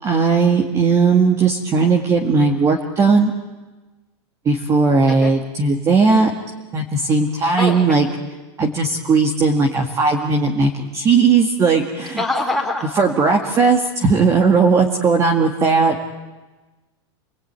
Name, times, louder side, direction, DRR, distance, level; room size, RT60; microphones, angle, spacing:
voice 1, 0.0-3.3 4.5-6.3 6.7-8.1 8.6-12.2 13.0-16.0, right 4 dB, 20° right, 2 dB, 2.0 m, -17 dB
voice 2, 7.6-8.0 12.2-12.9, left 2 dB, ahead, -1 dB, 4.2 m, -24 dB
28.5 x 20.0 x 9.7 m, 1.2 s
supercardioid pair, 160°, 15 cm